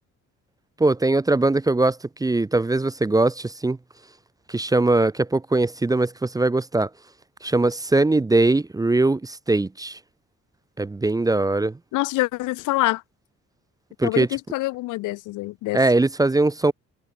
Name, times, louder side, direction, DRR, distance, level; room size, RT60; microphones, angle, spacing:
voice 1, 0.8-3.8 4.5-6.9 7.4-10.0 10.8-11.8 14.0-14.3 15.7-16.7, right 2 dB, 10° right, 0.5 m, -21 dB
voice 2, 11.9-13.0 14.0-15.8, left 19 dB, 90° left, 0.6 m, -25 dB
cardioid pair, 90°, 30 cm